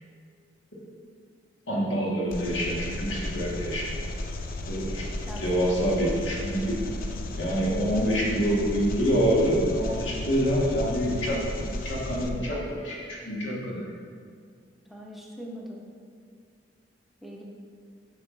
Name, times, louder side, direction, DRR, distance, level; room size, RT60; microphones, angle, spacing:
voice 1, 1.7-4.0 4.7-5.1 5.4-6.8 7.4-13.9, equal, 80° left, -4 dB, 1.6 m, -26 dB
Engine, 2.3-12.3, left 1 dB, 50° left, 0.5 m, -34 dB
voice 2, 14.9-15.8 17.2-17.4, equal, ahead, -3 dB, 0.7 m, -41 dB
7.4 x 5.5 x 3.2 m, 2.2 s
head